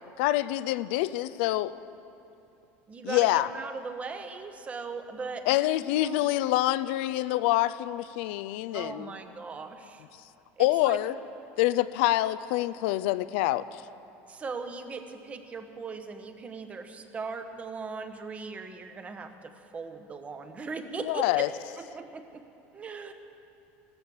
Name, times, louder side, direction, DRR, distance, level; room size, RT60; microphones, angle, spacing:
voice 1, 0.2-1.7 3.0-3.5 5.5-9.1 10.6-11.2 11.6-13.6 20.9-21.5, left 16 dB, 80° left, 14 dB, 0.5 m, -26 dB
voice 2, 2.9-5.5 5.8-6.3 8.7-10.0 10.6-11.0 14.3-21.5 21.8-22.4 22.7-23.1, right 4 dB, 25° right, 7 dB, 1.1 m, -39 dB
15.5 x 13.0 x 7.2 m, 2.7 s
supercardioid pair, 135°, 6 cm